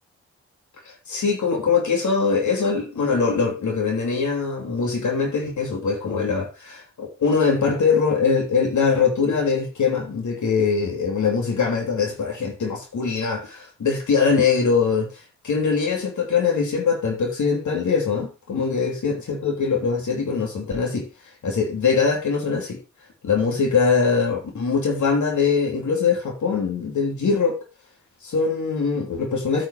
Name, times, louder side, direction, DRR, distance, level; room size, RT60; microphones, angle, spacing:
voice 1, 0.8-15.1 15.4-19.1 19.4-21.1 21.4-22.8 23.2-27.6 28.2-29.7, left 5 dB, 75° left, 3.0 m, -22 dB
9.1 x 6.2 x 4.9 m
cardioid pair, 65°, 30 cm